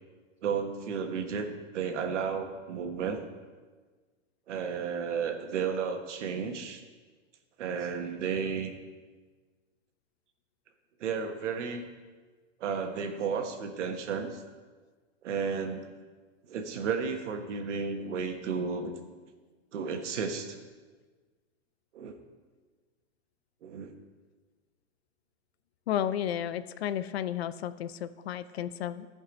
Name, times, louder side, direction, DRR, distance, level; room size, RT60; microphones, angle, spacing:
voice 1, 0.4-1.5 1.7-3.2 4.5-6.8 7.6-8.7 11.0-11.8 12.6-14.4 15.2-15.9 16.5-18.9 19.7-20.7 21.9-22.1 23.6-23.9, right 6 dB, 70° right, 5 dB, 1.4 m, -33 dB
voice 2, 25.9-29.1, left 10 dB, 60° left, 13 dB, 0.5 m, -32 dB
14.5 x 5.4 x 5.2 m, 1.4 s
supercardioid pair, 180°, 36 cm